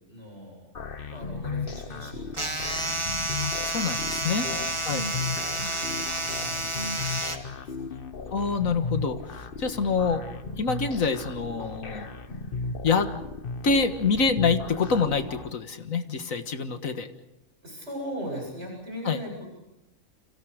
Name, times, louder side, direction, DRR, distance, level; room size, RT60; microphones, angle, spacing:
voice 1, 0.1-0.7 1.1-3.4 4.2-8.1 17.6-19.6, equal, 55° right, 0 dB, 8.3 m, -41 dB
sound 1, 0.7-15.5, left 4 dB, 45° left, 1.2 m, -36 dB
sound 2, 2.3-7.4, right 2 dB, 20° right, 1.8 m, -30 dB
voice 2, 3.4-4.5 4.9-5.1 8.3-10.2 10.6-12.1 12.8-13.1 13.6-17.1 19.1-19.2, left 5 dB, 80° left, 8 dB, 2.0 m, -26 dB
29.5 x 26.0 x 5.1 m, 0.89 s
omnidirectional pair, 1.4 m